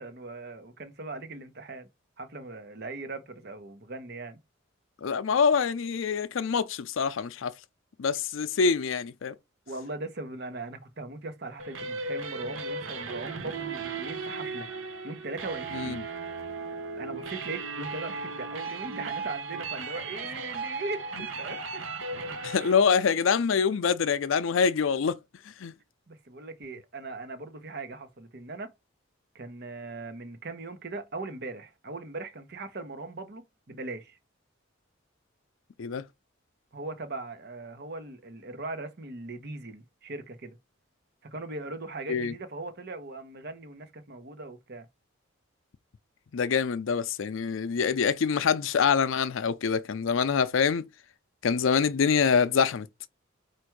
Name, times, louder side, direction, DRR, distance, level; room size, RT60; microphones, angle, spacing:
voice 1, 0.0-1.9 2.2-4.4 9.7-14.7 15.0-16.0 17.0-21.8 22.6-22.8 26.1-28.7 29.3-34.2 36.7-40.6 41.3-44.9, right 2 dB, 55° right, 0.9 m, -39 dB
voice 2, 5.0-7.5 8.0-9.3 15.7-16.0 22.3-25.2 25.6-25.7 35.8-36.0 42.1-42.3 46.3-50.9 51.4-52.9, left 6 dB, 75° left, 0.5 m, -25 dB
sound 1, 11.6-22.7, right 4 dB, 80° right, 0.9 m, -36 dB
4.5 x 2.5 x 4.6 m
head